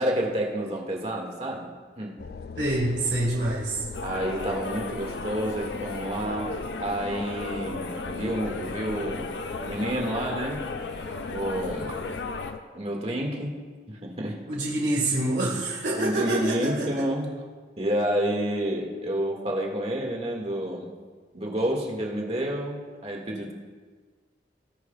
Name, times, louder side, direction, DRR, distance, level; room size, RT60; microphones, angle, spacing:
voice 1, 0.0-1.7 2.0-2.2 4.0-6.5 6.8-10.7 11.3-12.0 12.7-13.6 13.9-14.4 16.0-17.3 17.8-20.9 21.3-23.5, right 1 dB, 35° right, -1 dB, 1.9 m, -29 dB
sound 1, 2.2-12.6, left 4 dB, 55° left, 0.3 m, -40 dB
voice 2, 2.6-3.8 14.5-17.1, right 1 dB, 80° right, -4 dB, 1.9 m, -26 dB
sound 2, 3.9-12.5, left 3 dB, 80° left, 0.9 m, -35 dB
19.5 x 9.6 x 2.4 m, 1.5 s
head